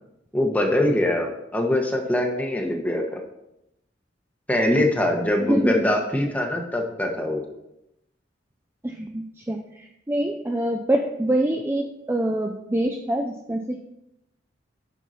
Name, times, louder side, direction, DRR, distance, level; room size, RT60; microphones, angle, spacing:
voice 1, 0.3-3.2 4.5-7.4, left 1 dB, 10° left, 2 dB, 1.1 m, -23 dB
voice 2, 5.4-5.9 8.8-13.8, right 1 dB, 15° right, 3 dB, 0.4 m, -25 dB
9.2 x 5.7 x 4.1 m, 0.85 s
head